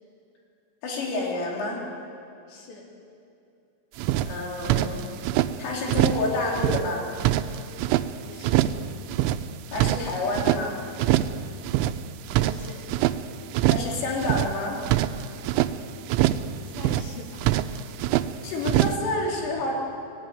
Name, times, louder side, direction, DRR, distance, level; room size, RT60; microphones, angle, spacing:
voice 1, 0.8-1.9 4.3-5.1 5.6-7.1 9.7-10.8 13.7-14.8 18.4-19.7, left 2 dB, 85° left, -2 dB, 6.3 m, -28 dB
voice 2, 2.5-2.9 8.2-8.7 12.4-12.9 16.6-17.8, left 4 dB, 60° left, -1 dB, 5.5 m, -44 dB
sound 1, 4.0-5.5 5.9-6.3 6.5-8.1 8.4-8.8 9.1-10.6 11.0-11.4 11.6-13.2 13.5-13.9 14.2-15.7 16.1-16.5 16.7-18.3 18.6-18.9, right 13 dB, 80° right, 3.0 m, -24 dB
27.0 x 18.5 x 9.6 m, 2.6 s
omnidirectional pair, 5.6 m